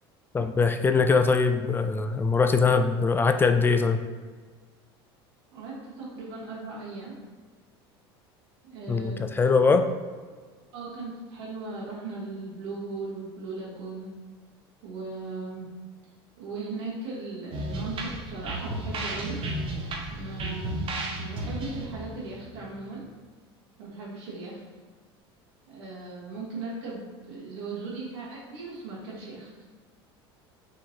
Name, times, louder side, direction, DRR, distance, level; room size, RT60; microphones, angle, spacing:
voice 1, 0.3-4.0 8.9-9.9, left 4 dB, 15° left, 8 dB, 0.3 m, -22 dB
voice 2, 5.5-7.2 8.6-9.4 10.7-14.1 14.8-15.7 16.4-19.4 20.1-20.9 21.2-23.0 23.8-24.6 25.7-29.5, right 3 dB, 75° right, -6 dB, 1.3 m, -38 dB
sound 1, 17.5-23.1, right 1 dB, 45° right, 0.8 m, -34 dB
4.2 x 2.9 x 2.8 m, 1.5 s
hypercardioid pair, 85°, 13 cm